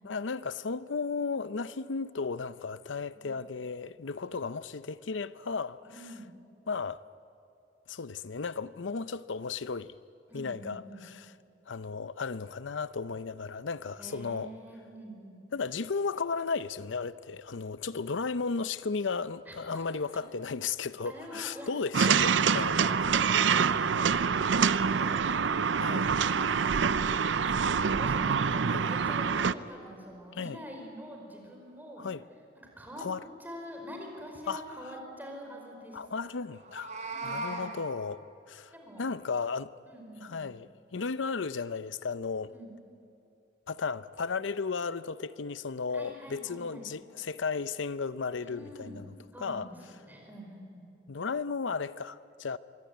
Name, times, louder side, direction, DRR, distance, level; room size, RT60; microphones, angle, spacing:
voice 1, 0.0-6.2 6.7-7.0 7.9-9.9 10.3-11.3 11.7-14.5 15.5-22.8 23.9-24.1 25.8-26.1 28.7-28.8 30.3-30.6 32.0-32.2 33.0-33.2 34.5-34.9 35.9-38.7 39.0-39.7 40.2-42.5 43.7-49.7 51.1-52.6, left 4 dB, 80° left, 0.7 m, -35 dB
voice 2, 5.9-6.3 10.3-11.0 14.0-15.4 19.5-19.8 21.0-21.7 22.6-25.2 25.8-26.7 27.4-32.1 32.8-33.0 33.4-36.0 37.1-37.7 38.7-39.1 39.9-40.4 42.5-42.7 45.9-46.9 48.4-49.0 49.3-49.7 50.0-50.9, equal, 10° right, 4.8 m, -45 dB
sound 1, 21.9-29.5, right 6 dB, 75° right, 0.6 m, -26 dB
Meow, 36.6-37.7, right 2 dB, 40° right, 3.9 m, -37 dB
24.0 x 23.5 x 9.4 m
head